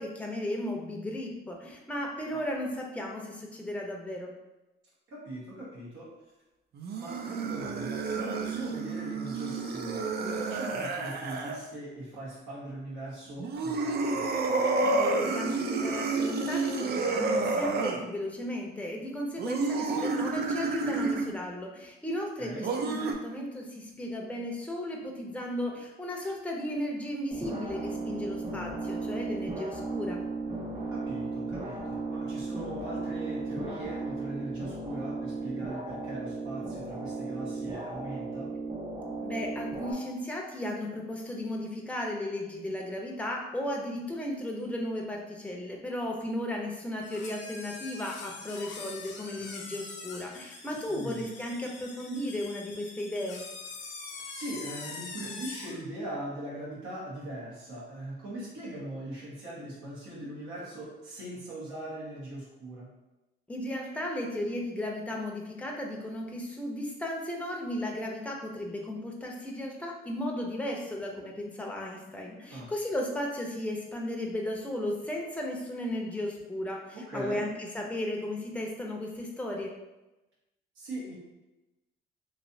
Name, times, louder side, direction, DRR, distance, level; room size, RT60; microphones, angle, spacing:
voice 1, 0.0-4.3 14.8-30.2 39.2-53.4 63.5-79.7, left 1 dB, 5° left, 0 dB, 0.6 m, -35 dB
voice 2, 5.1-6.1 6.9-14.2 22.4-22.6 30.9-38.5 50.9-51.2 54.3-62.9 72.5-72.7 76.9-77.4 80.7-81.1, right 1 dB, 85° right, -7 dB, 1.4 m, -40 dB
sound 1, 6.7-11.6 13.4-18.0 19.4-21.3 22.6-23.1, right 3 dB, 55° right, 0.4 m, -30 dB
sound 2, 27.3-39.9, right 3 dB, 35° right, 1.1 m, -36 dB
sound 3, 47.0-55.8, left 4 dB, 70° left, 0.6 m, -43 dB
3.1 x 2.7 x 2.7 m, 1.0 s
cardioid pair, 90°, 20 cm